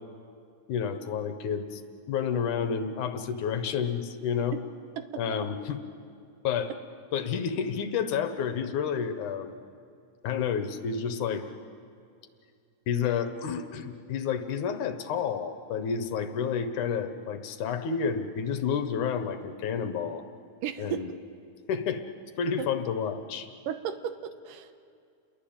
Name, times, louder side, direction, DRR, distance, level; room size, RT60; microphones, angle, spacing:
voice 1, 0.7-1.8 2.1-4.6 5.2-5.8 6.4-6.7 7.1-9.5 10.2-11.4 12.9-20.2 20.8-21.1 21.7-22.0 22.4-23.5, left 7 dB, 70° left, 9 dB, 2.6 m, -30 dB
voice 2, 5.0-5.5 20.6-21.2 22.6-22.7 23.7-24.7, right 9 dB, 80° right, 9 dB, 2.8 m, -35 dB
29.5 x 22.5 x 8.9 m, 2.4 s
omnidirectional pair, 3.9 m